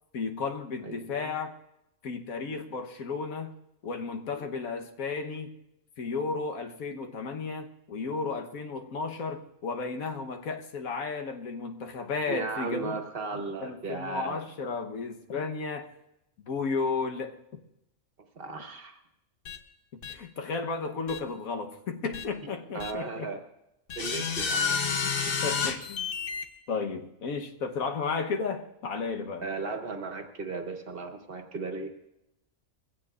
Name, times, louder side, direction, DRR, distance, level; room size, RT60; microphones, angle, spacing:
voice 1, 0.1-1.5 2.0-3.5 3.8-5.5 6.0-13.0 13.3-15.9 16.5-17.3 19.9-23.3 25.2-26.1 26.7-29.5, left 4 dB, 80° left, 4 dB, 1.5 m, -33 dB
voice 2, 0.8-1.3 4.3-4.5 12.3-14.4 18.3-19.0 22.7-23.4 24.0-24.8 29.4-31.9, right 4 dB, 45° right, 5 dB, 1.3 m, -36 dB
sound 1, 19.4-19.6 20.0-20.1 21.1-21.2 22.1-22.2 22.8-22.9 23.9-26.4, left 6 dB, 45° left, 0.9 m, -30 dB
21.5 x 16.0 x 2.4 m, 0.86 s
omnidirectional pair, 1.5 m